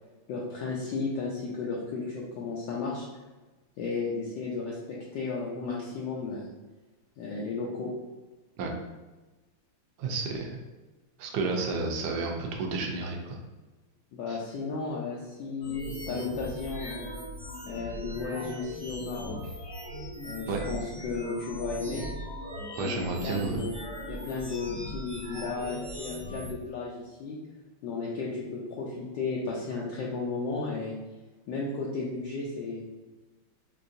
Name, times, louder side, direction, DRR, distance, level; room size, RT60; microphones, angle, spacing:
voice 1, 0.3-3.1 3.8-6.5 7.2-7.9 14.1-17.1 17.7-19.5 20.2-22.1 22.8-23.7 24.1-27.4 27.8-30.9 31.5-32.8, left 4 dB, 75° left, -4 dB, 1.1 m, -34 dB
voice 2, 10.0-10.6 11.2-13.4 14.3-14.4 20.5-20.6 22.8-23.6, right 4 dB, 75° right, 1 dB, 1.0 m, -31 dB
sound 1, 15.6-26.5, equal, 30° left, 0.4 m, -39 dB
4.6 x 2.5 x 2.5 m, 1.2 s
omnidirectional pair, 2.3 m